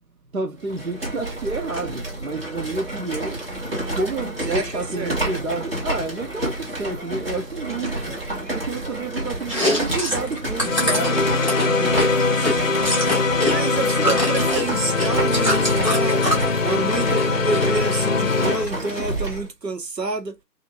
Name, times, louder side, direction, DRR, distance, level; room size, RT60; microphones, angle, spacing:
voice 1, 0.3-3.4 3.9-8.0 8.5-12.2, right 3 dB, 55° right, 0.7 m, -30 dB
sound 1, 0.6-19.5, right 1 dB, 35° right, 2.3 m, -30 dB
voice 2, 4.5-5.2 8.1-8.4 12.4-12.9 13.5-16.3 16.6-20.4, right 3 dB, 80° right, 1.4 m, -29 dB
Chewing mastication, 9.4-13.5 13.8-16.5 16.9-17.6 17.9-18.8, equal, 20° right, 1.5 m, -25 dB
sound 2, 10.6-18.7, left 4 dB, 55° left, 0.6 m, -22 dB
5.6 x 2.8 x 2.4 m
figure-of-eight pair, 180°, 49 cm